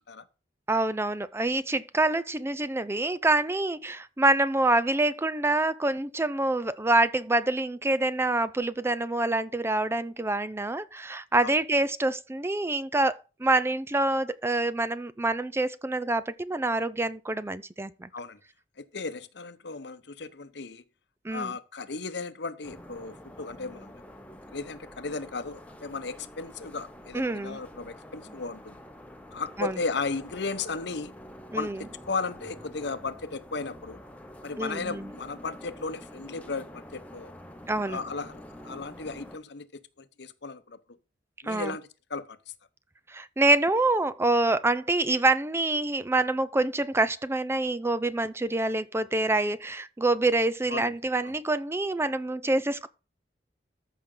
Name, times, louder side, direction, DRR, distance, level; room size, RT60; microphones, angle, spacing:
voice 1, 0.7-18.1 21.2-21.5 27.1-27.6 29.6-29.8 31.5-31.8 34.6-35.1 37.7-38.0 41.4-41.8 43.1-52.9, right 2 dB, 15° right, 0.5 m, -26 dB
voice 2, 18.8-20.8 21.3-23.9 24.5-28.8 29.3-31.1 31.5-34.0 34.4-37.3 37.9-40.8 41.4-42.4 50.7-50.9 51.2-51.3, left 4 dB, 70° left, 1.0 m, -35 dB
sound 1, 22.6-39.4, left 1 dB, 10° left, 1.0 m, -47 dB
14.0 x 6.0 x 3.8 m
head